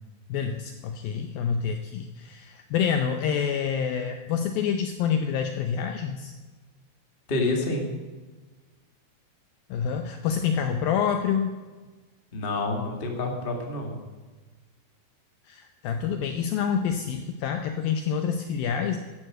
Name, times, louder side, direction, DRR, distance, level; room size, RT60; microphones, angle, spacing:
voice 1, 0.3-6.3 9.7-11.6 15.4-19.0, left 7 dB, 80° left, 6 dB, 2.1 m, -27 dB
voice 2, 7.3-7.8 12.3-14.0, left 2 dB, 50° left, 2 dB, 0.6 m, -28 dB
12.5 x 11.0 x 7.7 m, 1.3 s
omnidirectional pair, 5.1 m